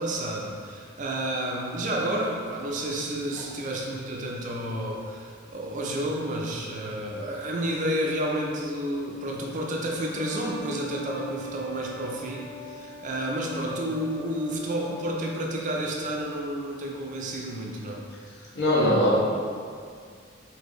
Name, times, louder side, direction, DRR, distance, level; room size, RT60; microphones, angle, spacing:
voice 1, 0.0-18.0, right 1 dB, 40° right, -1 dB, 0.4 m, -30 dB
sound 1, 10.1-16.4, equal, 80° left, 1.2 m, -43 dB
voice 2, 18.5-19.2, equal, 60° left, -6 dB, 1.0 m, -20 dB
4.3 x 2.7 x 3.0 m, 2.1 s
head